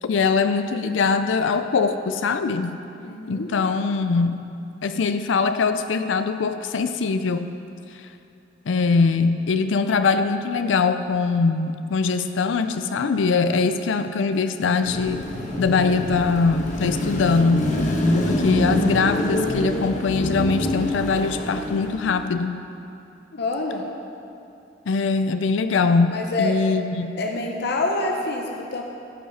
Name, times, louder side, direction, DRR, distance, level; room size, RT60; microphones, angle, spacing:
voice 1, 0.0-2.8 3.3-4.4 4.8-7.5 7.9-8.1 8.7-15.2 15.5-17.7 18.1-22.5 24.9-27.1, left 4 dB, 75° left, 9 dB, 0.4 m, -22 dB
voice 2, 3.0-3.5 23.3-23.8 26.1-26.6 27.2-28.8, left 2 dB, 60° left, 1 dB, 0.9 m, -26 dB
Car passing by / Traffic noise roadway noise / Engine, 14.8-22.2, left 1 dB, 40° left, 1.1 m, -25 dB
14.0 x 5.5 x 5.6 m, 2.6 s
head